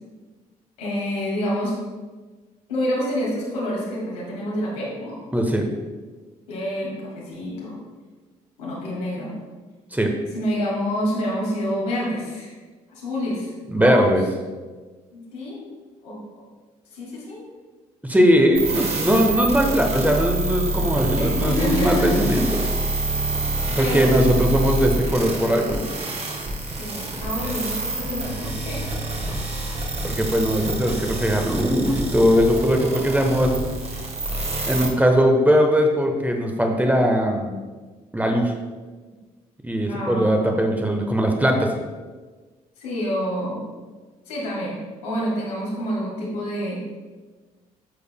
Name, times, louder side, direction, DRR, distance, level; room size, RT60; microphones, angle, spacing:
voice 1, 0.8-1.7 2.7-5.2 6.5-7.8 8.6-9.3 10.3-12.5 12.9-14.2 15.1-15.6 16.0-16.2 16.9-17.4 21.2-22.2 23.7-24.1 26.8-28.8 39.9-40.5 42.8-43.6 44.3-46.8, equal, 75° left, -5 dB, 2.1 m, -28 dB
voice 2, 5.3-5.7 9.9-10.1 13.7-14.2 18.0-22.6 23.7-25.8 30.0-33.5 34.7-37.5 38.1-38.5 39.6-41.7, equal, 10° right, 2 dB, 1.0 m, -20 dB
sound 1, 18.5-34.9, right 2 dB, 35° right, 1.6 m, -27 dB
9.6 x 6.8 x 2.2 m, 1.3 s
figure-of-eight pair, 45°, 19 cm